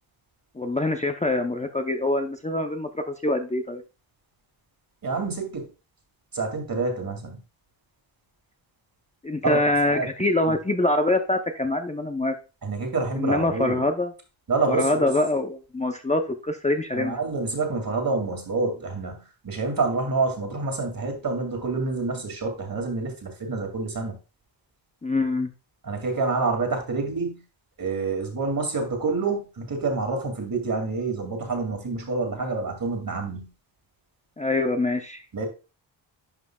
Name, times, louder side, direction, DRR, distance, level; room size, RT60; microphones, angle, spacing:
voice 1, 0.6-3.8 9.2-12.3 13.2-14.1 14.7-17.1 25.0-25.5 34.4-35.4, left 2 dB, 15° left, 5 dB, 0.6 m, -24 dB
voice 2, 5.0-5.7 6.3-7.4 9.4-9.6 9.8-10.1 10.5-10.6 12.6-13.8 14.5-15.1 16.9-19.1 19.4-24.2 25.8-27.4 27.8-33.5 35.3-35.5, right 3 dB, 45° right, 3 dB, 2.3 m, -27 dB
11.0 x 5.1 x 2.3 m, 0.30 s
cardioid pair, 85°, 47 cm